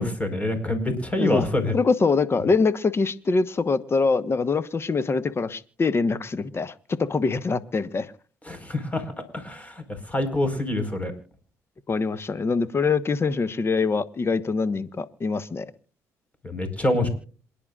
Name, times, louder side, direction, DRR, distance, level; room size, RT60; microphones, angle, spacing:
voice 1, 0.0-1.7 8.4-9.0 9.3-9.7 10.1-11.1 16.4-17.1, left 1 dB, 20° left, 8 dB, 4.6 m, -25 dB
voice 2, 1.7-8.1 11.9-15.7, left 4 dB, 35° left, 15 dB, 1.3 m, -24 dB
27.0 x 10.5 x 2.4 m, 0.41 s
supercardioid pair, 60°, 7 cm